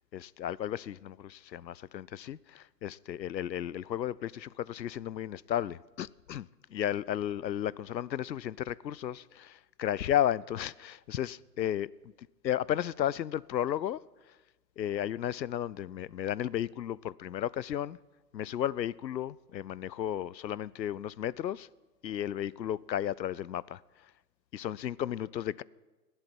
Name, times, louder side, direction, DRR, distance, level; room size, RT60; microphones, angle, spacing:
voice 1, 0.1-11.9 12.4-14.0 14.8-18.0 18.3-21.7 22.0-24.1 24.5-25.6, left 11 dB, 85° left, 0.6 m, -34 dB
28.0 x 11.5 x 4.5 m
hypercardioid pair, 175°, 50 cm